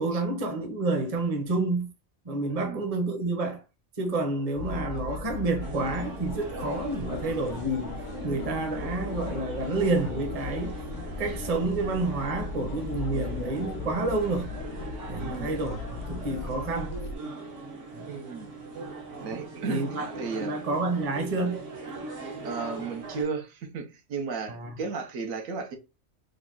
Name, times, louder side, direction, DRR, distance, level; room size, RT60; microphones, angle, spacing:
voice 1, 0.0-1.9 2.2-3.6 4.0-10.7 11.2-14.5 15.1-16.9 17.9-18.1 19.3-19.4 19.7-20.1 20.4-21.6 24.5-24.8, right 2 dB, 35° right, 0.7 m, -29 dB
sound 1, 4.6-17.1, left 4 dB, 50° left, 0.6 m, -37 dB
sound 2, 5.6-23.2, right 3 dB, 65° right, 1.5 m, -41 dB
voice 2, 15.2-15.5 18.1-18.5 19.2-20.6 22.4-25.8, right 5 dB, 85° right, 1.2 m, -34 dB
3.3 x 2.3 x 3.7 m
omnidirectional pair, 1.4 m